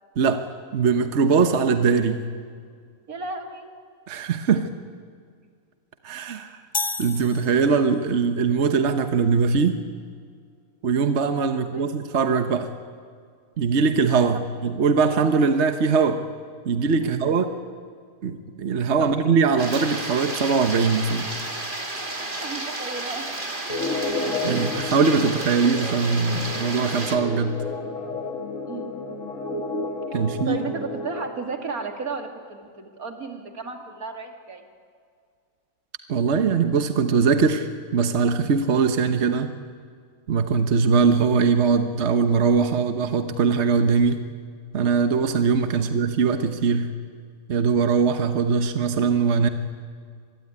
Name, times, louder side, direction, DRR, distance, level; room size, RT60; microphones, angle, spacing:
voice 1, 0.2-2.2 4.1-4.7 6.0-6.6 7.0-9.8 10.8-12.7 13.6-16.2 16.6-17.5 18.2-21.3 24.4-27.6 30.1-30.6 36.1-39.5 40.3-44.2 44.7-46.9 47.5-49.5, right 5 dB, 55° right, 8 dB, 1.4 m, -21 dB
voice 2, 3.1-3.7 11.5-11.9 14.3-14.4 17.0-17.2 19.0-19.1 22.4-23.3 28.7-28.9 30.4-34.7 45.7-45.9, right 4 dB, 90° right, 4 dB, 2.9 m, -34 dB
sound 1, 6.7-8.1, left 4 dB, 30° left, 0.5 m, -31 dB
sound 2, 19.6-27.2, right 2 dB, 35° right, 2.7 m, -32 dB
sound 3, 23.7-31.2, left 3 dB, 65° left, 2.2 m, -31 dB
25.0 x 21.5 x 9.7 m, 2.1 s
omnidirectional pair, 1.5 m